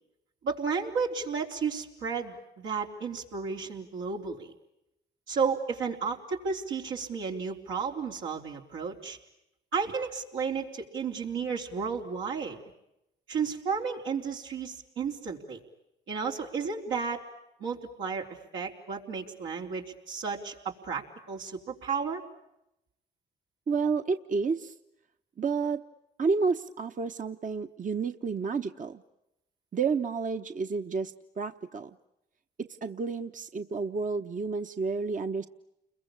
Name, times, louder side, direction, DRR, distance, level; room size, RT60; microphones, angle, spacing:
voice 1, 0.4-4.5 5.3-9.2 9.7-12.6 13.3-15.6 16.1-17.2 17.6-18.3 18.5-22.2, right 5 dB, 85° right, -1 dB, 4.0 m, -33 dB
voice 2, 23.7-24.7 25.4-25.8 26.2-29.0 29.7-31.9 32.6-35.5, right 4 dB, 40° right, 7 dB, 1.1 m, -30 dB
30.0 x 22.0 x 8.7 m, 0.87 s
supercardioid pair, 65°, 20 cm